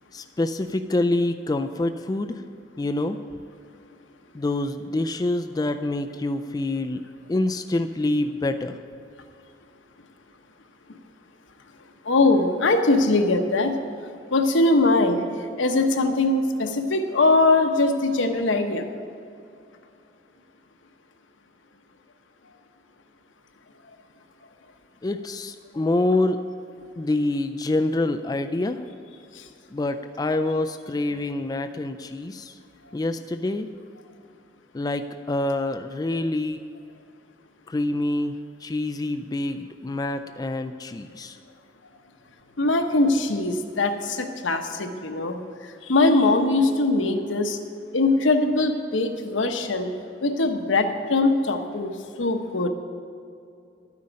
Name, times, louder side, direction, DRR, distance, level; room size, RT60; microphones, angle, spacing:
voice 1, 0.1-2.4 2.8-3.2 4.3-7.0 7.3-8.8 25.0-26.4 27.0-28.8 29.7-32.5 32.9-33.7 34.7-36.6 37.7-38.3 38.6-41.4, left 2 dB, 20° left, 7 dB, 0.3 m, -26 dB
voice 2, 12.1-13.7 14.3-15.2 15.6-18.8 42.6-45.4 45.9-47.6 47.9-49.9 50.2-51.9 52.2-52.7, left 2 dB, 85° left, 6 dB, 1.0 m, -21 dB
11.5 x 9.5 x 5.2 m, 2.5 s
head